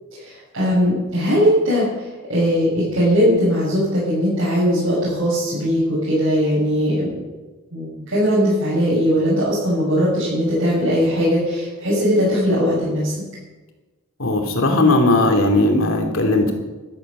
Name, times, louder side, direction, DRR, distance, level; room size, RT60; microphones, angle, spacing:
voice 1, 0.1-7.2 7.7-13.1, equal, 70° right, -9 dB, 6.6 m, -19 dB
voice 2, 14.2-16.5, left 2 dB, 65° left, 3 dB, 2.6 m, -17 dB
13.0 x 12.5 x 6.6 m, 1.2 s
head